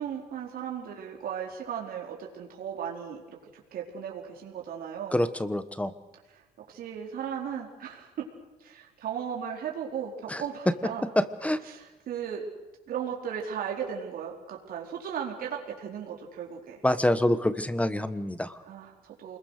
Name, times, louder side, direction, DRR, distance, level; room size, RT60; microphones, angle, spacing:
voice 1, 0.0-3.4 3.7-5.1 6.3-6.4 6.7-8.3 8.6-10.1 10.4-11.1 11.6-12.4 12.9-16.8 18.6-19.4, right 8 dB, 60° right, 0 dB, 4.3 m, -36 dB
voice 2, 5.1-5.9 10.3-10.4 11.2-11.6 16.8-18.5, left 1 dB, 10° left, 13 dB, 1.2 m, -26 dB
29.0 x 21.5 x 6.6 m, 1.1 s
cardioid pair, 110°, 17 cm